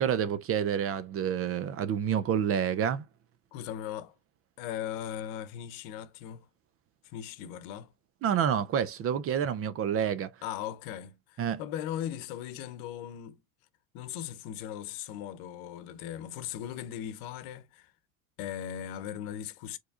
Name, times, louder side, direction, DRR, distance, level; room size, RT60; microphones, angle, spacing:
voice 1, 0.0-3.1 8.2-10.3 11.4-11.6, right 8 dB, 35° right, 0.4 m, -28 dB
voice 2, 3.5-4.1 4.6-6.5 7.1-7.9 10.4-13.4 13.9-17.9 18.4-19.8, left 10 dB, 70° left, 0.8 m, -38 dB
4.5 x 3.0 x 2.4 m
supercardioid pair, 100°, 42 cm